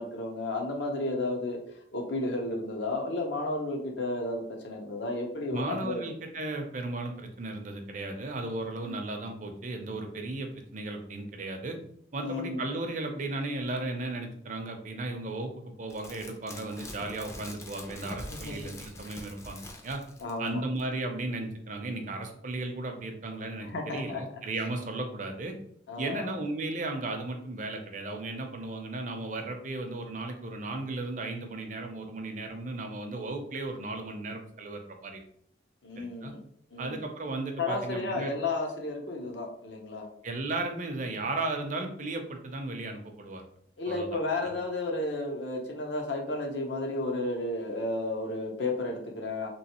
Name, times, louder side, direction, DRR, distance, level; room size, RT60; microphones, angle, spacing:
voice 1, 0.0-1.6 1.9-6.1 8.8-9.0 12.2-12.7 18.5-18.7 20.2-20.6 23.6-24.2 25.9-26.3 35.8-36.4 36.7-37.0 37.6-40.1 43.8-49.5, left 2 dB, 75° left, 1 dB, 0.8 m, -32 dB
voice 2, 5.5-11.8 12.1-15.5 15.8-20.0 20.4-25.5 26.0-35.2 36.0-36.3 36.8-38.3 40.2-43.4 43.9-44.1 44.4-44.5, right 2 dB, 40° right, 4 dB, 0.5 m, -35 dB
sound 1, 15.9-20.5 20.8-20.9, left 1 dB, 15° left, 0.4 m, -44 dB
3.1 x 3.0 x 2.9 m, 0.68 s
head